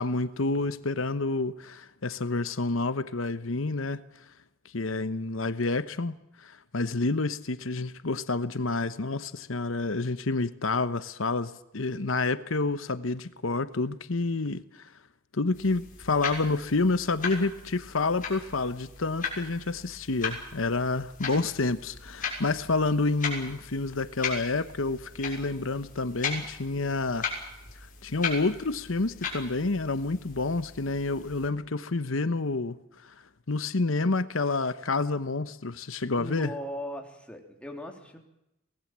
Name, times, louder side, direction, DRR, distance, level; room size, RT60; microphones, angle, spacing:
voice 1, 0.0-4.0 4.7-14.9 15.3-27.3 28.0-32.8 33.0-33.1 33.5-36.5, left 3 dB, 75° left, 1.0 m, -29 dB
sound 1, 15.5-31.5, left 5 dB, 40° left, 6.7 m, -38 dB
voice 2, 36.2-38.2, equal, 5° left, 3.5 m, -38 dB
24.0 x 19.0 x 7.5 m
head